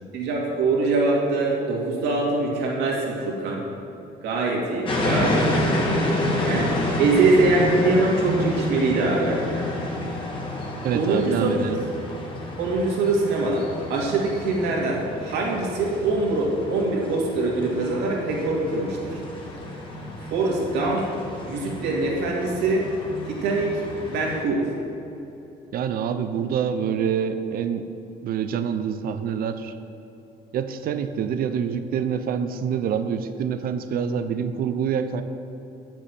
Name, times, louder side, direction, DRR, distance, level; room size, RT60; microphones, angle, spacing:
voice 1, 0.1-3.6 4.2-6.0 6.4-6.7 7.0-9.4 10.9-11.5 12.6-19.2 20.3-21.1 21.5-22.9 23.2-24.7, right 3 dB, 85° right, -2 dB, 2.4 m, -23 dB
sound 1, 4.8-24.4, left 1 dB, 30° left, 2.0 m, -29 dB
voice 2, 10.8-11.8 25.7-27.8 28.2-29.7 30.5-35.2, right 7 dB, 60° right, 9 dB, 0.7 m, -26 dB
7.7 x 6.9 x 7.6 m, 2.9 s
cardioid pair, 110°, 17 cm